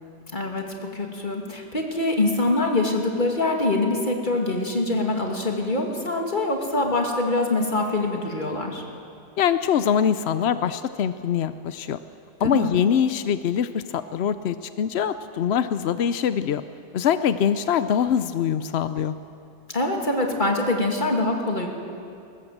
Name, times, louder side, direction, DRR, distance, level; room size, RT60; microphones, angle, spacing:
voice 1, 0.3-8.8 12.4-12.7 19.7-21.7, left 2 dB, 30° left, 1 dB, 2.6 m, -24 dB
voice 2, 9.4-12.0 12.4-16.6 16.9-19.1, left 8 dB, 70° left, 12 dB, 0.6 m, -23 dB
21.5 x 19.0 x 7.9 m, 2.5 s
omnidirectional pair, 1.8 m